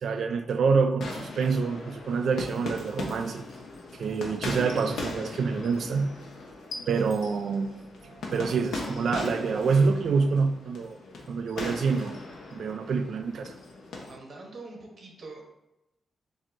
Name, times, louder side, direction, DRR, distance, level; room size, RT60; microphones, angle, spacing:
voice 1, 0.0-3.4 3.9-6.2 6.9-7.8 8.0-11.0 11.3-12.2 12.5-13.5, right 5 dB, 60° right, 8 dB, 0.3 m, -27 dB
sound 1, 1.0-14.1, left 3 dB, 90° left, 0.8 m, -39 dB
voice 2, 14.1-15.4, right 3 dB, 40° right, 0 dB, 0.9 m, -44 dB
7.2 x 2.7 x 2.6 m, 0.91 s
wide cardioid pair, 180°, 0 cm